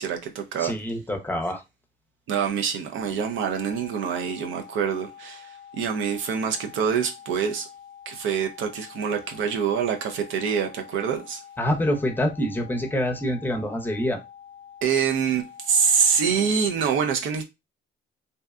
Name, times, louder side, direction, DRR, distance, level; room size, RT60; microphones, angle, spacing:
voice 1, 0.0-0.7 2.3-7.7 8.1-11.4 14.8-17.4, right 6 dB, 80° right, 0.5 m, -25 dB
voice 2, 0.6-1.6 11.6-14.2, equal, 10° left, 0.6 m, -26 dB
sound 1, 3.6-16.5, left 8 dB, 90° left, 0.5 m, -47 dB
2.6 x 2.1 x 2.3 m
cardioid pair, 90°, 20 cm